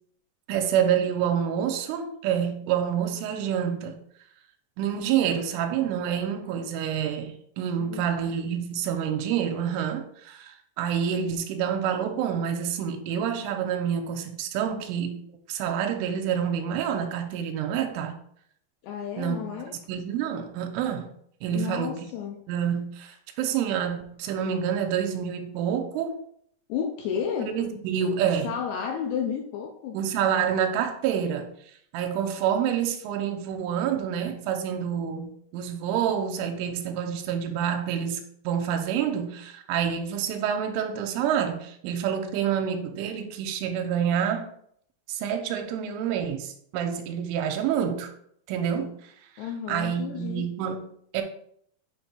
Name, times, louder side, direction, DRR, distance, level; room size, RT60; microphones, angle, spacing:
voice 1, 0.5-4.0 4.8-15.2 15.5-18.2 19.2-21.1 21.4-22.0 22.5-26.2 27.5-28.5 29.9-31.5 31.9-44.5 45.1-48.1 48.5-49.0 49.7-51.2, right 8 dB, 90° right, 3.2 m, -28 dB
voice 2, 7.8-8.3 18.8-19.8 21.5-22.4 26.7-27.6 28.4-30.0 49.4-50.5, left 7 dB, 85° left, 2.4 m, -32 dB
7.6 x 7.0 x 2.2 m
omnidirectional pair, 5.5 m